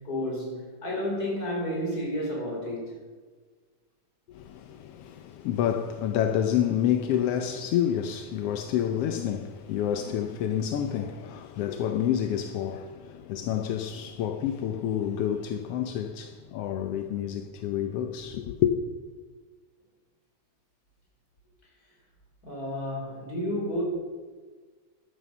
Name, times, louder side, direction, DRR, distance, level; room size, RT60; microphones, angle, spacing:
voice 1, 0.0-3.0 22.4-23.8, left 1 dB, 30° left, 5.3 m, -31 dB
voice 2, 4.3-18.8, left 10 dB, 70° left, 1.5 m, -28 dB
13.0 x 12.5 x 7.1 m
omnidirectional pair, 3.3 m